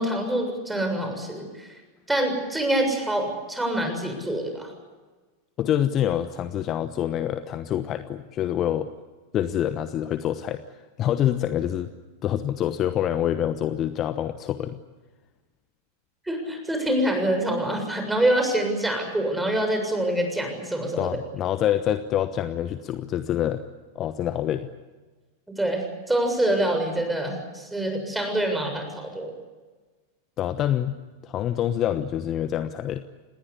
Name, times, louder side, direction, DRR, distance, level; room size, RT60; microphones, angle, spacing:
voice 1, 0.0-1.7 2.1-4.7 16.3-21.1 25.5-29.3, right 1 dB, 5° right, 4 dB, 7.2 m, -25 dB
voice 2, 5.6-8.9 9.3-10.6 11.0-11.9 12.2-14.8 21.0-23.6 23.9-24.7 30.4-33.0, left 11 dB, 30° left, 12 dB, 1.1 m, -26 dB
28.0 x 20.5 x 8.5 m, 1.3 s
figure-of-eight pair, 90°, 0 cm